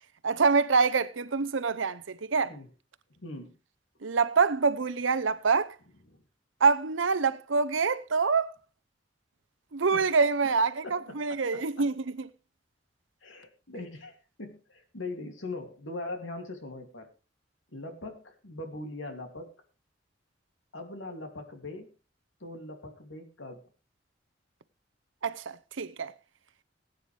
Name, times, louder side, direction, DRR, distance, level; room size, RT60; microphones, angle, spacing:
voice 1, 0.2-2.5 4.0-5.7 6.6-8.6 9.7-12.3 25.2-26.1, right 4 dB, 90° right, 0.8 m, -26 dB
voice 2, 3.2-3.6 6.1-6.2 9.9-10.1 10.8-11.9 13.2-17.1 17.7-19.5 20.7-21.9 22.4-23.6, left 2 dB, 85° left, 2.6 m, -41 dB
19.0 x 9.1 x 3.3 m
head